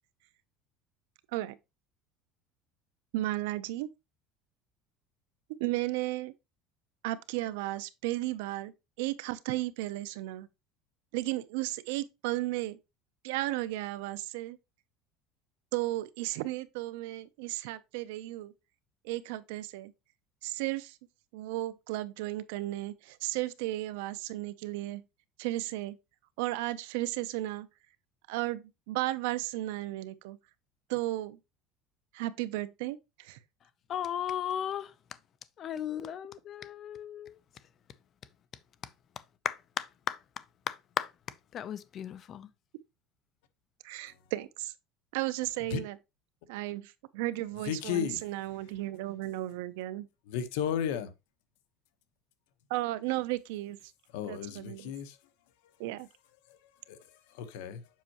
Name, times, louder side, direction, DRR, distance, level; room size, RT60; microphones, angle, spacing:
voice 1, 3.1-3.9 5.6-6.3 7.0-8.7 9.0-10.5 11.1-12.8 13.2-14.6 15.7-18.5 19.0-19.9 20.4-21.0 21.3-25.0 25.4-26.0 26.4-27.7 28.3-30.4 30.9-31.4 32.1-33.4 43.8-44.7 45.1-46.0 46.5-50.1 52.7-53.8 54.3-54.9 55.8-56.1, right 17 dB, 85° right, 0.6 m, -34 dB
voice 2, 33.9-34.9 35.6-37.4 39.4-40.2 40.7-41.1 41.5-42.5, left 10 dB, 35° left, 0.5 m, -35 dB
voice 3, 47.7-48.2 50.3-51.1 54.1-55.2 56.5-56.6 56.9-57.0 57.3-57.8, left 8 dB, 85° left, 0.9 m, -33 dB
7.4 x 5.4 x 2.9 m
cardioid pair, 160°, 0 cm